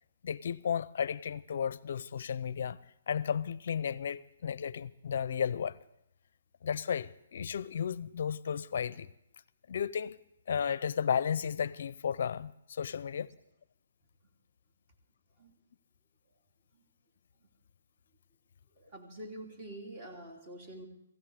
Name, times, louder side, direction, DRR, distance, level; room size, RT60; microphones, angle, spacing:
voice 1, 0.2-2.8 3.1-5.8 6.6-9.1 9.7-10.2 10.5-13.3, left 7 dB, 60° left, 0.5 m, -33 dB
voice 2, 18.8-20.9, right 1 dB, 35° right, 2.9 m, -46 dB
16.5 x 16.0 x 4.8 m
hypercardioid pair, 150°, 0 cm